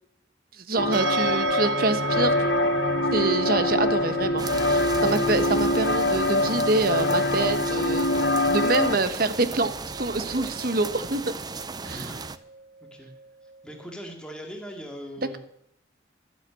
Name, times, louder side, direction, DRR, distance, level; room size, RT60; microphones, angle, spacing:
voice 1, 0.6-2.5 3.1-11.3 11.8-12.0, right 2 dB, 50° right, 11 dB, 1.0 m, -26 dB
sound 1, 0.8-9.0, left 2 dB, 65° left, 0.9 m, -24 dB
sound 2, 0.9-13.9, right 4 dB, 75° right, 0.6 m, -36 dB
sound 3, 4.4-12.4, right 4 dB, 20° right, 0.5 m, -36 dB
voice 2, 11.8-12.3 12.8-13.1 13.6-15.4, equal, 5° left, 1 dB, 2.3 m, -40 dB
12.5 x 10.5 x 7.4 m, 0.73 s
head